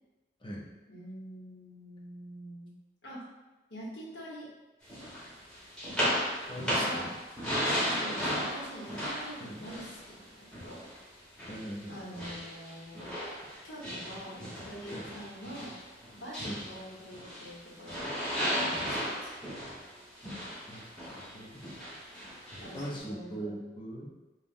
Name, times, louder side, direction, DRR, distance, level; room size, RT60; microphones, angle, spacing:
voice 1, 0.9-2.7 3.0-3.2 3.7-4.5 6.7-7.1 8.0-10.8 11.9-13.1 13.6-15.7 16.1-18.0 18.6-19.3 22.6-23.6, equal, 80° left, -6 dB, 1.2 m, -45 dB
sound 1, 4.9-11.0 11.4-17.6 17.9-23.0, equal, 5° left, 1.2 m, -35 dB
voice 2, 6.5-7.1 9.4-9.6 11.5-11.9 14.9-15.1 16.4-16.6 20.7-21.6 22.7-24.1, equal, 25° left, -3 dB, 0.6 m, -41 dB
5.3 x 2.4 x 2.6 m, 1.1 s
head